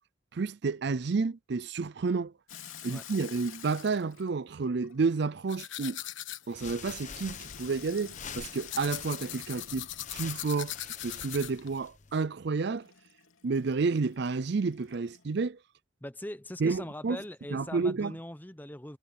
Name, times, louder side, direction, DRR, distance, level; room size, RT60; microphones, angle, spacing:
voice 1, 0.3-2.3 2.8-6.0 6.5-9.9 10.1-10.8 11.0-12.9 13.4-15.6 16.6-17.2 17.5-18.1, right 4 dB, 55° right, 0.4 m, -30 dB
Water tap faucet / Sink (filling or washing), 2.5-5.5 7.0-10.7 12.8-15.3, left 9 dB, 85° left, 2.9 m, -50 dB
sound 1, 5.5-11.8, left 13 dB, 65° left, 1.3 m, -41 dB
sound 2, 6.5-12.2, left 6 dB, 35° left, 1.1 m, -46 dB
voice 2, 16.0-19.0, left 1 dB, 10° left, 0.7 m, -41 dB
head